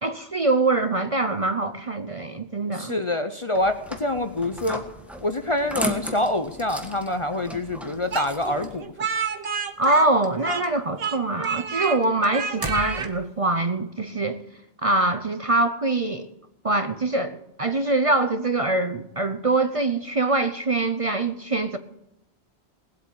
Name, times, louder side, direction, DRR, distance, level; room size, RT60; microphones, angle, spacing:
voice 1, 0.0-3.0 9.8-14.4 14.8-16.3 16.6-21.8, right 2 dB, 35° right, 9 dB, 0.7 m, -24 dB
voice 2, 2.7-4.8 5.2-8.9, left 1 dB, 30° left, 9 dB, 0.7 m, -26 dB
sound 1, 3.5-8.7, equal, ahead, 1.5 m, -35 dB
Speech, 8.1-10.7 11.0-12.0 12.3-13.1, right 6 dB, 60° right, 1.2 m, -29 dB
sound 2, 8.2-9.5 9.8-10.3 10.6-13.4, equal, 20° right, 1.5 m, -37 dB
19.5 x 8.4 x 8.5 m, 0.85 s
omnidirectional pair, 1.2 m